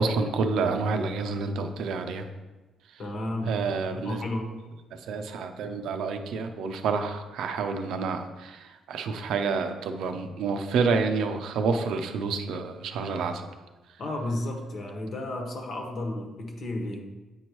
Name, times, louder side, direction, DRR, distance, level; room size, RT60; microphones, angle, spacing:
voice 1, 0.0-2.2 3.5-4.2 5.1-13.4, right 4 dB, 80° right, 6 dB, 0.6 m, -28 dB
voice 2, 3.0-4.5 14.0-17.0, left 1 dB, 55° left, 2 dB, 1.3 m, -33 dB
8.5 x 4.5 x 3.1 m, 1.2 s
cardioid pair, 90°, 0 cm